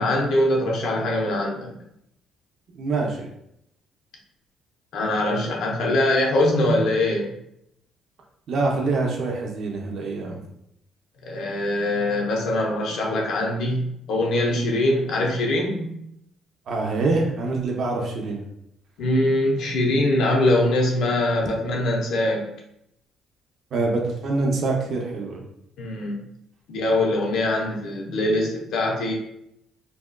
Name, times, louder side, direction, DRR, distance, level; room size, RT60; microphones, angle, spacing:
voice 1, 0.0-1.8 4.9-7.3 11.2-15.9 19.0-22.5 25.8-26.2 26.7-29.1, left 1 dB, 70° left, 0 dB, 0.6 m, -23 dB
voice 2, 2.7-3.3 8.5-10.4 16.7-18.4 23.7-25.4, right 3 dB, 55° right, 0 dB, 0.5 m, -25 dB
2.6 x 2.3 x 2.2 m, 0.78 s
cardioid pair, 110°, 0 cm